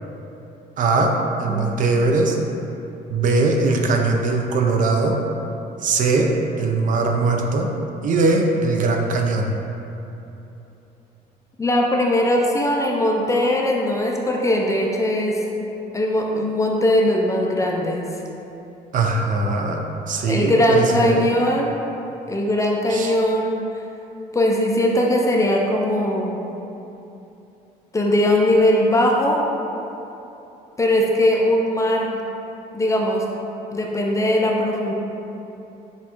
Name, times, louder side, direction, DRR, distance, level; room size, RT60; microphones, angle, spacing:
voice 1, 0.8-2.4 3.1-5.2 5.8-7.7 8.0-9.5 18.9-19.8 20.1-21.3 22.9-23.1, right 3 dB, 50° right, 2 dB, 0.5 m, -20 dB
voice 2, 11.6-15.4 15.9-18.0 20.3-21.7 22.3-23.8 24.3-26.4 27.9-29.4 30.8-32.2 32.7-33.3 33.7-34.9, left 1 dB, 20° left, -1 dB, 0.4 m, -20 dB
6.2 x 2.4 x 2.9 m, 3.0 s
cardioid pair, 110°, 17 cm